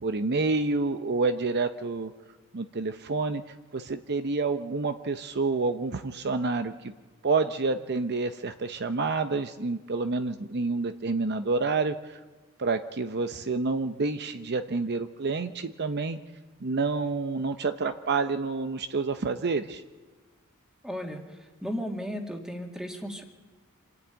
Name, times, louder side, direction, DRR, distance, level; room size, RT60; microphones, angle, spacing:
voice 1, 0.0-2.1 2.5-6.9 7.2-12.2 12.6-16.2 16.6-19.8, right 3 dB, 50° right, 9 dB, 0.7 m, -28 dB
voice 2, 20.8-21.2 21.6-23.2, equal, 5° right, 3 dB, 2.1 m, -34 dB
26.5 x 10.5 x 9.1 m, 1.3 s
head